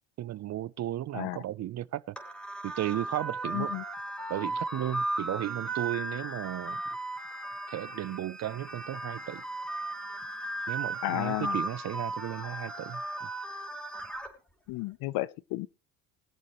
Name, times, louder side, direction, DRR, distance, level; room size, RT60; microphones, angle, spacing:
voice 1, 0.2-2.1 2.6-3.7 4.3-6.8 7.7-9.4 10.7-13.3, right 13 dB, 45° right, 0.6 m, -35 dB
sound 1, 2.2-14.3, right 2 dB, ahead, 4.0 m, -36 dB
voice 2, 3.5-3.8 11.0-11.6 14.7-15.7, left 18 dB, 70° left, 0.7 m, -32 dB
21.5 x 7.6 x 3.1 m
supercardioid pair, 85°, 38 cm